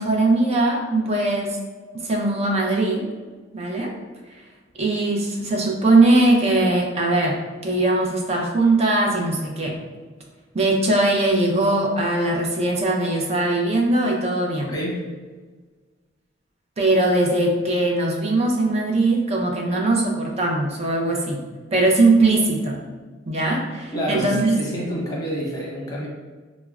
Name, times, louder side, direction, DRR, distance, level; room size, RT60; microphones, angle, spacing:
voice 1, 0.0-1.6 1.9-3.1 3.5-3.9 4.8-7.4 7.6-9.7 10.5-14.7 16.8-21.4 21.7-22.8 23.3-24.6, right 2 dB, 35° right, -1 dB, 0.5 m, -20 dB
voice 2, 14.7-15.0 23.9-26.1, equal, 20° left, -5 dB, 0.8 m, -27 dB
4.4 x 2.0 x 2.3 m, 1.4 s
head